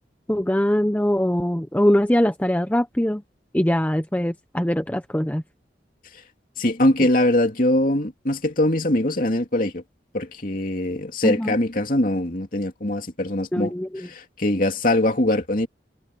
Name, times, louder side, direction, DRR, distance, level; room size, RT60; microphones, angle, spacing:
voice 1, 0.3-3.2 3.5-5.4 11.2-11.5 13.5-14.1, equal, 10° left, 0.7 m, -22 dB
voice 2, 6.6-9.8 10.1-15.7, left 1 dB, 45° left, 2.9 m, -22 dB
head